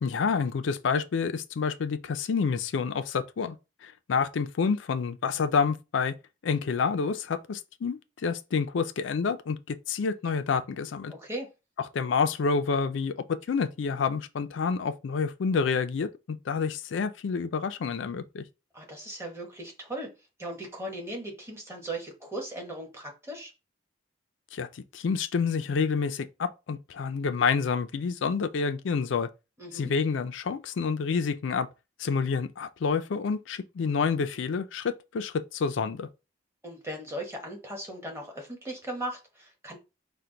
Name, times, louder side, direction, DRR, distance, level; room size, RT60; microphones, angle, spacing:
voice 1, 0.0-3.6 3.8-6.1 6.4-11.1 11.9-13.1 13.5-18.4 24.5-29.3 29.7-31.7 32.0-36.1, left 5 dB, 80° left, 0.4 m, -28 dB
voice 2, 11.1-11.5 18.7-20.1 20.4-23.5 29.6-29.9 36.6-39.8, right 1 dB, 15° right, 1.2 m, -38 dB
4.4 x 2.2 x 3.8 m
head